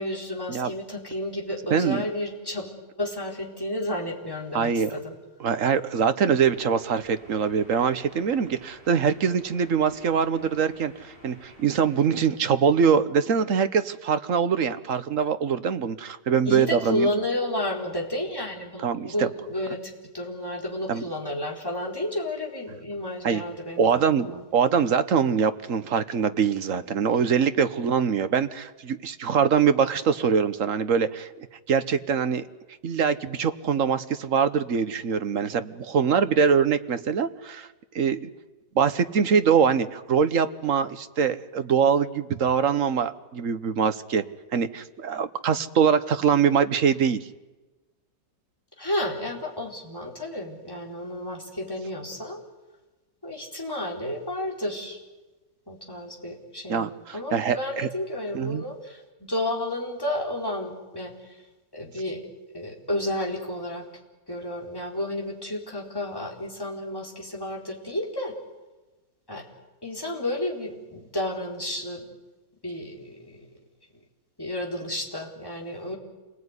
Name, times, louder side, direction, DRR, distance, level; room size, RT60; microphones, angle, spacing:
voice 1, 0.0-5.1 16.4-24.4 48.8-52.4 53.2-55.0 55.7-61.4 61.7-62.2 62.5-63.8 64.3-68.4 69.3-69.4 69.8-72.1 72.6-73.5 74.4-76.0, left 1 dB, 10° left, -1 dB, 4.3 m, -31 dB
voice 2, 1.7-2.0 4.5-4.9 5.4-17.1 18.8-19.3 20.9-21.0 23.2-23.4 23.8-24.3 24.5-31.3 31.7-32.5 32.8-37.7 37.9-38.3 38.7-44.2 44.5-47.3 56.7-57.9 58.3-58.6, right 6 dB, 50° right, 11 dB, 1.4 m, -23 dB
sound 1, 6.3-12.3, equal, 30° right, 7.3 m, -51 dB
27.5 x 20.0 x 9.8 m, 1.2 s
omnidirectional pair, 1.9 m